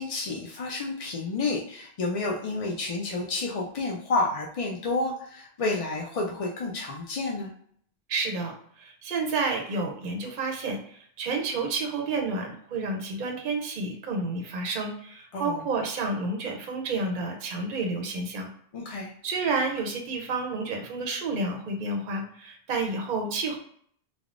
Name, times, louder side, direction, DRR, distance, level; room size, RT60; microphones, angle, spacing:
voice 1, 0.0-7.5 15.3-15.6 18.7-19.1, left 3 dB, 55° left, -1 dB, 0.4 m, -30 dB
voice 2, 8.1-18.5 19.2-23.6, right 3 dB, 60° right, 2 dB, 0.7 m, -30 dB
3.3 x 2.0 x 2.4 m, 0.62 s
omnidirectional pair, 1.0 m